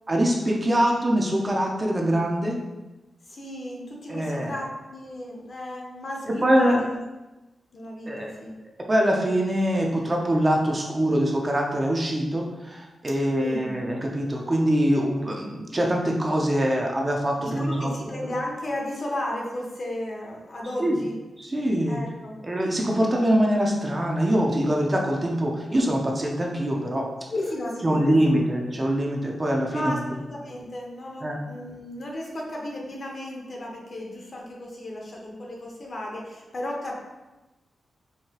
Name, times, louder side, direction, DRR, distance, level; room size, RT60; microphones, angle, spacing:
voice 1, 0.1-2.6 4.1-4.5 6.4-6.8 8.1-8.3 8.9-18.1 20.8-21.0 21.4-22.0 22.4-27.1 27.8-30.0 31.2-31.4, equal, 25° right, 0 dB, 0.5 m, -23 dB
voice 2, 3.2-7.0 7.7-8.6 13.4-13.7 17.4-21.1 21.8-22.3 27.3-28.4 29.7-36.9, left 1 dB, 45° left, -1 dB, 0.8 m, -34 dB
4.6 x 2.7 x 2.8 m, 1.1 s
wide cardioid pair, 125°, 0 cm